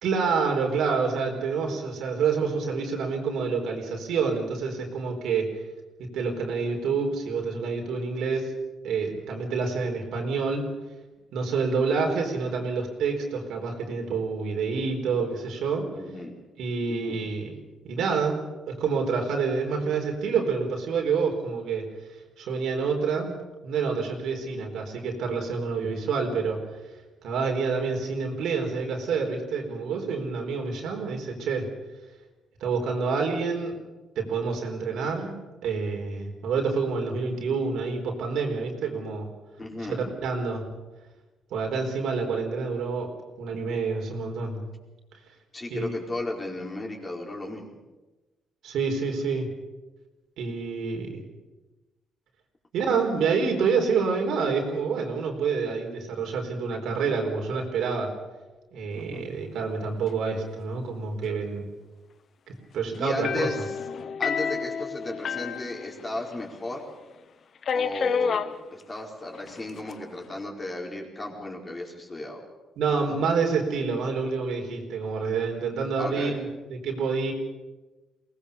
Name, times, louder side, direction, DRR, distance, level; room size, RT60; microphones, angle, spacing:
voice 1, 0.0-5.5 6.0-8.5 8.8-10.7 11.3-15.9 16.6-17.5 17.8-21.9 22.4-23.3 23.6-26.6 27.2-31.7 32.6-33.8 34.2-35.4 35.6-39.3 39.8-40.7 41.5-44.6 45.7-45.9 48.6-49.5 50.4-51.2 52.7-58.1 58.7-61.7 62.5-63.5 72.8-77.3, right 5 dB, 80° right, 2 dB, 4.4 m, -28 dB
voice 2, 15.9-16.3 16.9-17.2 39.6-40.0 45.5-47.8 58.9-59.3 63.0-63.6 64.2-66.8 67.7-72.5 76.0-76.4, left 2 dB, 25° left, 0 dB, 4.9 m, -35 dB
sound 1, 63.2-66.5 66.7-66.8 67.6-68.5 69.5-69.9, left 6 dB, 55° left, 0.9 m, -29 dB
23.0 x 18.5 x 7.0 m, 1.1 s
cardioid pair, 90°, 0 cm